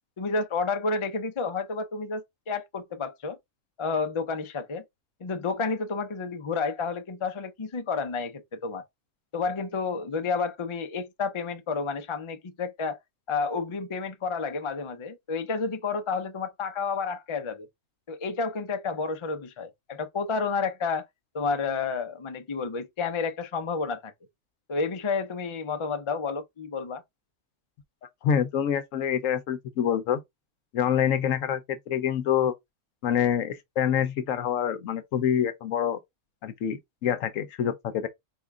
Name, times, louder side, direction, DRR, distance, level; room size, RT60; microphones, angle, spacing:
voice 1, 0.2-3.4 3.8-4.8 5.2-8.8 9.3-13.0 13.3-17.7 18.1-21.0 21.3-24.1 24.7-27.0, left 4 dB, 40° left, 0.4 m, -30 dB
voice 2, 28.2-30.2 30.7-32.5 33.0-36.0 36.4-38.1, left 9 dB, 70° left, 1.0 m, -26 dB
4.9 x 2.4 x 3.5 m
omnidirectional pair, 1.5 m